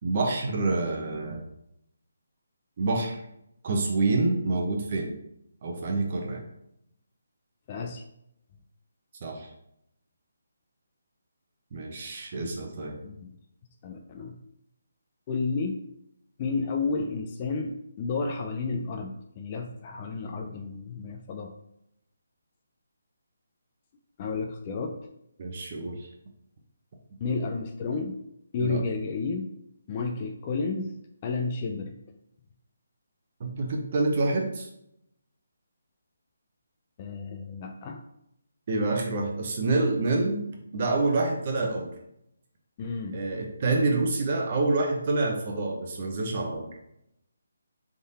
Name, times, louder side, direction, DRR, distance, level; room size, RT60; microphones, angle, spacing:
voice 1, 0.0-1.4 2.8-3.2 3.6-5.1 5.6-6.4 9.2-9.5 11.7-13.0 25.4-26.1 28.6-28.8 33.4-34.7 38.7-41.9 43.1-46.7, right 3 dB, 40° right, 1 dB, 1.0 m, -27 dB
voice 2, 7.7-8.0 13.0-13.3 13.8-14.4 15.3-15.8 16.4-21.5 24.2-25.0 27.2-28.2 28.5-29.5 29.9-32.0 37.0-38.0 42.8-43.2, left 4 dB, 25° left, 3 dB, 0.4 m, -31 dB
3.7 x 3.4 x 4.2 m, 0.77 s
hypercardioid pair, 165°, 0 cm